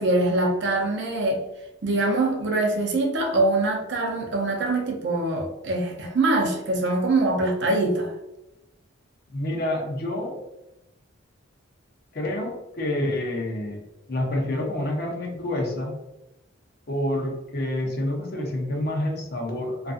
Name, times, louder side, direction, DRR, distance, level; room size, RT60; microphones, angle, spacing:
voice 1, 0.0-1.4 1.8-8.1, right 2 dB, 55° right, 0 dB, 0.5 m, -23 dB
voice 2, 9.3-10.5 12.1-13.8 14.1-16.0 16.9-19.9, left 1 dB, 50° left, 0 dB, 0.5 m, -28 dB
2.5 x 2.4 x 2.4 m, 0.92 s
head